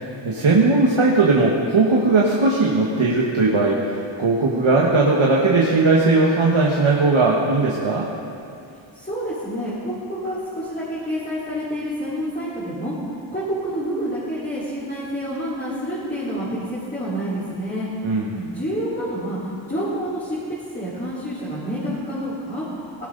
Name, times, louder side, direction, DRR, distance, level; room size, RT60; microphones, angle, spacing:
voice 1, 0.2-8.1 18.0-18.3, right 3 dB, 75° right, -3 dB, 1.6 m, -18 dB
voice 2, 8.9-12.9 13.3-17.9 18.3-20.4 20.7-22.6, equal, 20° left, -11 dB, 4.3 m, -28 dB
18.0 x 17.0 x 4.0 m, 2.6 s
wide cardioid pair, 75°, 48 cm